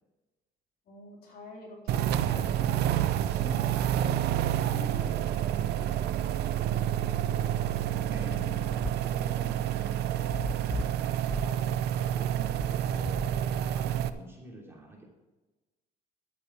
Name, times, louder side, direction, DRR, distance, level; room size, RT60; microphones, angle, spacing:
voice 1, 0.9-3.9 4.7-7.4 10.6-10.9, left 2 dB, 65° left, -2 dB, 3.8 m, -47 dB
sound 1, 1.9-14.1, right 11 dB, 75° right, 0.7 m, -29 dB
sound 2, 7.9-14.0, left 2 dB, 5° left, 0.3 m, -39 dB
voice 2, 8.0-10.2 10.5-15.0, right 2 dB, 15° right, -2 dB, 2.9 m, -47 dB
11.5 x 8.5 x 4.8 m, 1.1 s
cardioid pair, 110°, 17 cm